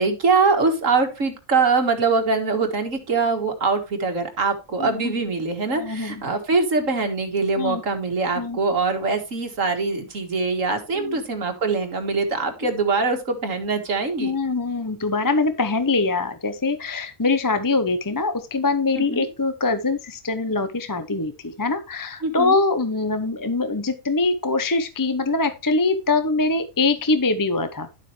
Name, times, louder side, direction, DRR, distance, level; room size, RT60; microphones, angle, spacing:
voice 1, 0.0-14.3 19.0-19.3 22.2-22.6, right 4 dB, 60° right, 5 dB, 2.0 m, -23 dB
voice 2, 4.8-5.1 5.8-6.2 7.6-7.8 8.4-8.6 10.9-11.2 14.2-27.9, left 3 dB, 20° left, 10 dB, 0.5 m, -23 dB
11.5 x 7.5 x 3.2 m, 0.28 s
omnidirectional pair, 1.5 m